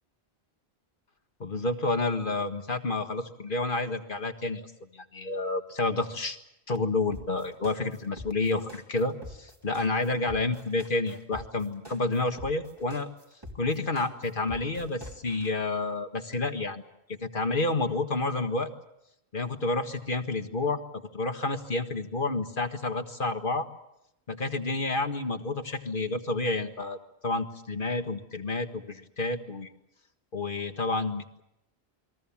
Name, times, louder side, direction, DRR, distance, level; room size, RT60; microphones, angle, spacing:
voice 1, 1.4-6.4 6.7-13.1 13.6-16.8 17.1-18.7 19.3-20.8 21.1-23.7 24.3-29.7 30.3-31.4, left 2 dB, 55° left, 7 dB, 1.8 m, -30 dB
sound 1, 7.1-15.5, left 1 dB, 20° right, 2.9 m, -45 dB
29.0 x 22.0 x 7.3 m, 0.85 s
omnidirectional pair, 1.1 m